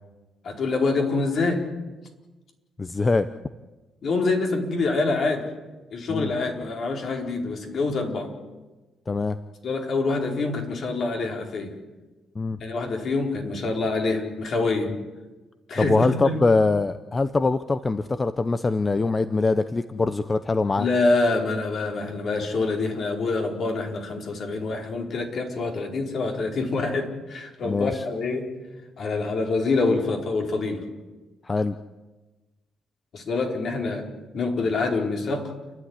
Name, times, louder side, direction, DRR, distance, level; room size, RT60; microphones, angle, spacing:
voice 1, 0.4-1.7 4.0-5.5 5.9-8.3 9.6-11.8 12.6-14.9 15.7-16.4 20.8-28.5 29.0-30.8 33.1-34.0 34.3-35.5, left 3 dB, 60° left, 2 dB, 4.6 m, -26 dB
voice 2, 2.8-3.3 6.1-6.3 9.1-9.4 12.3-12.6 14.9-15.0 15.8-20.9 27.6-28.0 31.4-31.8, left 3 dB, 25° left, 11 dB, 0.8 m, -23 dB
30.0 x 11.5 x 9.8 m, 1.2 s
cardioid pair, 90°, 0 cm